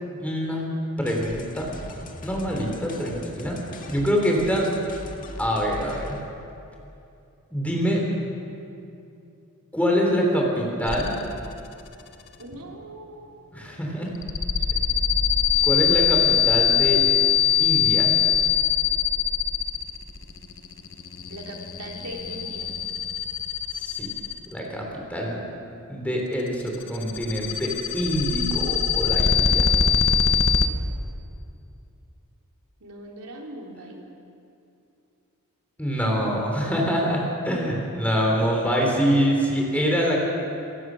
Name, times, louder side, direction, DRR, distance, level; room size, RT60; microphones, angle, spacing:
voice 1, 0.2-0.7 1.0-1.8 2.2-3.6 3.9-4.7 5.4-6.2 7.5-8.0 9.7-11.2 13.5-14.1 15.6-17.1 17.6-18.1 23.7-24.1 24.5-25.4 25.9-29.8 35.8-40.2, equal, 5° left, -1 dB, 3.4 m, -25 dB
sound 1, 1.0-6.2, left 1 dB, 40° left, 1.9 m, -40 dB
sound 2, 10.9-11.5 11.8-12.3 14.1-24.6 26.5-30.7, left 8 dB, 60° left, 1.2 m, -22 dB
voice 2, 12.4-13.7 14.7-14.8 21.3-22.7 32.8-34.0, right 1 dB, 85° right, -1 dB, 3.6 m, -40 dB
27.0 x 16.0 x 6.3 m, 2.6 s
head